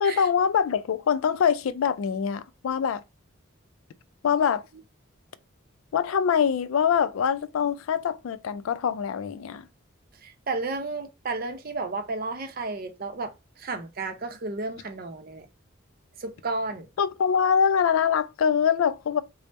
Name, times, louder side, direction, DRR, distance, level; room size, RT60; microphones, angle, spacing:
voice 1, 0.0-3.0 4.2-4.6 5.9-9.6 17.0-19.2, left 7 dB, 80° left, 0.3 m, -24 dB
voice 2, 10.2-13.3 13.6-15.4 16.2-16.9, right 3 dB, 45° right, 0.6 m, -32 dB
3.4 x 2.0 x 4.0 m
head